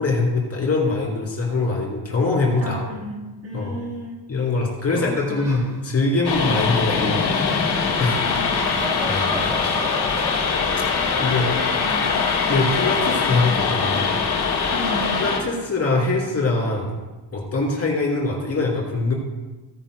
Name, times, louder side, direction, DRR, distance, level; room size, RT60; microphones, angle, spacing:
voice 1, 0.0-2.8 3.5-3.8 4.3-7.3 8.0-8.2 9.0-9.5 11.2-11.5 12.5-14.2 15.2-16.9 17.3-19.1, left 3 dB, 35° left, -2 dB, 2.8 m, -23 dB
voice 2, 2.6-4.2 4.9-5.4 8.1-8.9 11.5-12.6 14.7-15.1, equal, 35° right, -1 dB, 2.8 m, -34 dB
sound 1, 4.9-11.8, right 1 dB, 5° right, 1.1 m, -38 dB
sound 2, 6.2-15.4, left 5 dB, 70° left, 1.9 m, -22 dB
16.0 x 10.0 x 2.2 m, 1.2 s
cardioid pair, 140°, 41 cm